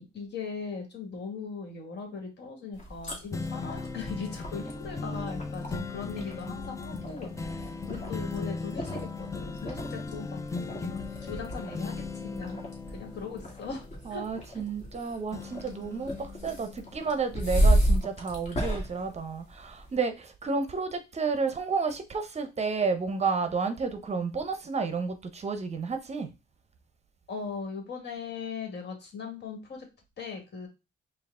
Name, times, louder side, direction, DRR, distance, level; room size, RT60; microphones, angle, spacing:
voice 1, 0.0-12.6 12.9-14.2 14.5-14.6 27.3-29.9 30.2-30.7, left 5 dB, 60° left, 1.6 m, -39 dB
sound 1, 2.7-19.9, right 1 dB, 40° left, 1.6 m, -33 dB
sound 2, 3.3-15.0 15.3-17.2 17.7-17.8, left 4 dB, 15° left, 0.4 m, -38 dB
voice 2, 14.1-26.3, right 4 dB, 35° right, 0.6 m, -31 dB
4.5 x 2.4 x 3.6 m
cardioid pair, 90°, 20 cm